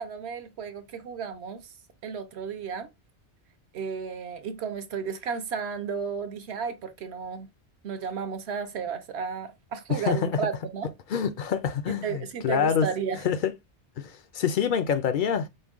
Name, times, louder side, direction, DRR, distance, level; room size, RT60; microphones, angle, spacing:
voice 1, 0.0-1.6 2.0-2.9 3.7-7.5 7.8-10.9 12.0-13.2, right 6 dB, 70° right, 1.0 m, -33 dB
voice 2, 9.9-10.4 11.1-12.9 13.2-13.5 14.0-15.5, left 7 dB, 60° left, 0.6 m, -26 dB
5.3 x 2.1 x 3.5 m
omnidirectional pair, 1.2 m